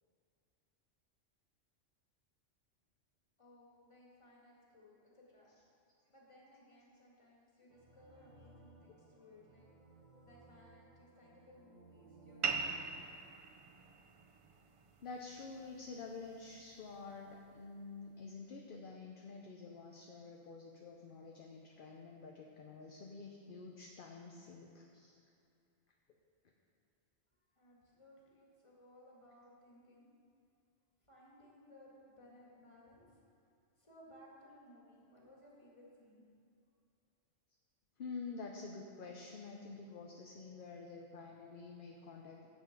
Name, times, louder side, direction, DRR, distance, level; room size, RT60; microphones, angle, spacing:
voice 1, 3.4-5.5 6.1-9.7 10.2-13.0 27.4-30.1 31.1-33.2 33.8-36.2, left 1 dB, 25° left, -4 dB, 1.9 m, -61 dB
sound 1, 7.7-13.0, right 3 dB, 40° right, 0.9 m, -61 dB
sound 2, 12.4-17.5, right 4 dB, 55° right, 0.3 m, -43 dB
voice 2, 15.0-25.2 38.0-42.5, left 4 dB, 50° left, 1 dB, 0.8 m, -49 dB
8.1 x 7.0 x 5.8 m, 2.5 s
omnidirectional pair, 1.3 m